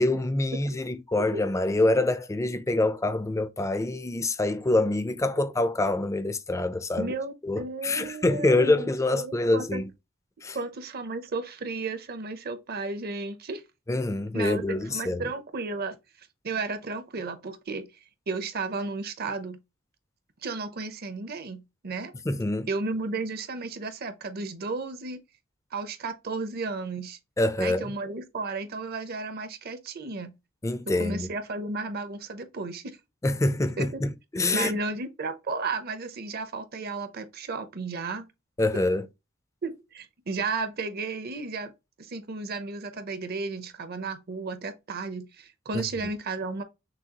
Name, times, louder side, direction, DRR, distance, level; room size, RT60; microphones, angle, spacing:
voice 1, 0.0-7.1 7.4-9.9 10.4-10.6 13.9-15.3 22.3-22.7 27.4-27.9 30.6-31.3 33.2-34.7 38.6-39.1 45.7-45.8, left 2 dB, 15° left, 0.4 m, -26 dB
voice 2, 7.0-9.8 10.5-13.6 14.3-17.9 18.3-19.6 20.4-22.1 22.7-25.2 25.7-27.2 27.6-30.3 31.0-33.0 33.8-34.0 34.5-38.3 39.6-41.7 42.0-46.6, right 3 dB, 50° right, 0.7 m, -33 dB
6.2 x 2.4 x 2.8 m
head